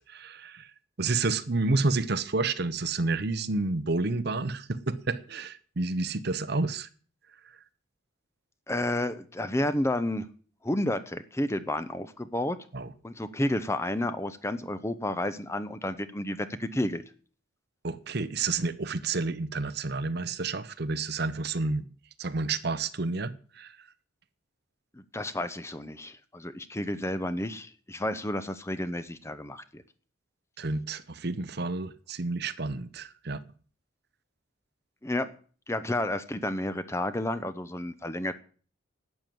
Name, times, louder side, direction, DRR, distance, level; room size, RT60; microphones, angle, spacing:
voice 1, 0.1-0.7 1.0-6.9 12.7-12.9 17.8-21.8 22.2-23.8 30.6-33.4, right 3 dB, 50° right, 0.9 m, -30 dB
voice 2, 8.7-10.3 10.6-12.6 13.0-17.0 24.9-29.8 35.0-35.3 35.7-38.3, left 1 dB, 15° left, 0.8 m, -31 dB
12.0 x 9.1 x 7.8 m
head